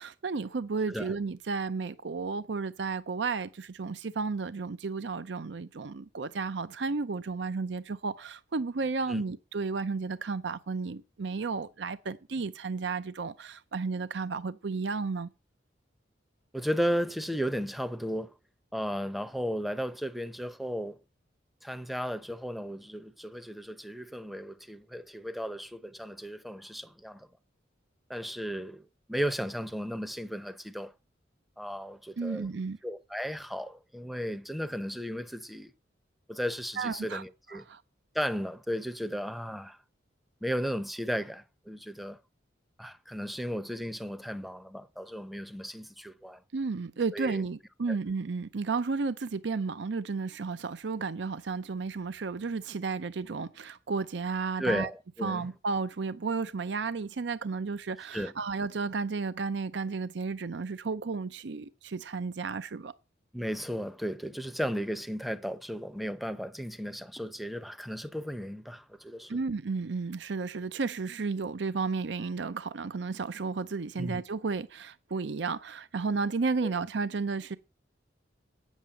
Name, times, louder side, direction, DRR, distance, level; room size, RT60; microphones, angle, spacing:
voice 1, 0.0-15.3 32.2-32.8 36.8-37.2 37.5-37.8 46.5-54.9 55.2-62.9 69.3-77.6, right 4 dB, 70° right, 0.6 m, -33 dB
voice 2, 16.5-18.3 18.7-21.0 21.6-27.3 28.1-28.8 29.1-30.9 31.6-32.6 32.8-35.7 36.3-37.6 38.1-39.8 40.4-42.2 42.8-46.4 47.1-47.5 47.9-48.0 54.6-55.5 58.1-58.3 63.3-69.4 74.0-74.2 76.6-76.7, equal, ahead, 0.7 m, -35 dB
9.3 x 7.4 x 8.9 m
head